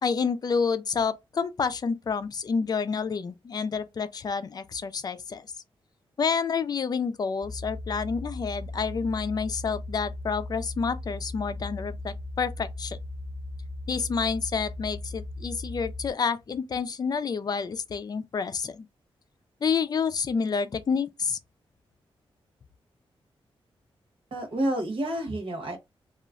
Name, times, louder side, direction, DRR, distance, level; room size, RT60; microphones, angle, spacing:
voice 1, 0.0-5.5 6.2-13.0 13.9-18.9 19.6-21.4, left 5 dB, 40° left, 0.4 m, -29 dB
sound 1, 7.4-16.1, left 2 dB, 15° right, 0.5 m, -37 dB
voice 2, 24.3-25.8, right 1 dB, 65° right, 1.1 m, -29 dB
3.0 x 2.4 x 2.4 m
cardioid pair, 100°, 10 cm